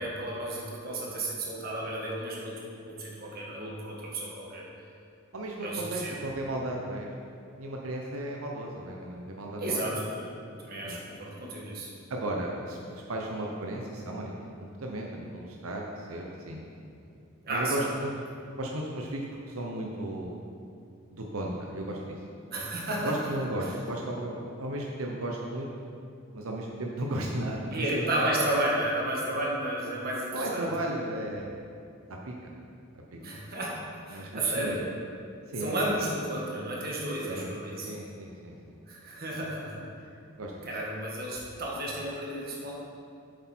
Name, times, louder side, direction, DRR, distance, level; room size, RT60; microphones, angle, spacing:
voice 1, 0.0-4.6 5.6-6.2 9.6-11.9 17.4-17.9 22.5-23.1 23.6-23.7 27.7-30.6 33.2-33.8 34.1-34.8 35.6-37.9 38.9-39.9 40.6-42.7, right 1 dB, 45° right, -3 dB, 1.8 m, -32 dB
voice 2, 5.3-7.1 7.6-10.1 10.8-11.0 12.1-16.7 17.5-18.1 18.6-20.4 21.1-22.2 23.0-25.7 26.3-28.1 30.3-31.5 32.3-32.5 34.1-34.8 35.5-36.0 37.3-37.5 37.8-38.6 40.4-40.5, right 1 dB, 85° right, -1 dB, 0.9 m, -35 dB
8.2 x 7.9 x 4.5 m, 2.5 s
head